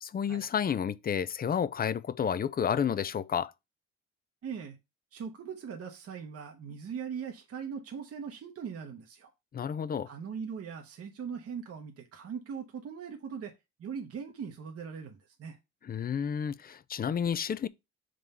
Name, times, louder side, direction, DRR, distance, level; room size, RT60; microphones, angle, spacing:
voice 1, 0.0-3.5 9.5-10.1 15.8-17.7, left 8 dB, 30° left, 0.4 m, -31 dB
voice 2, 4.4-4.8 5.1-9.3 10.1-13.5 13.8-15.6, right 7 dB, 50° right, 0.9 m, -40 dB
4.6 x 3.9 x 5.4 m
cardioid pair, 90°, 30 cm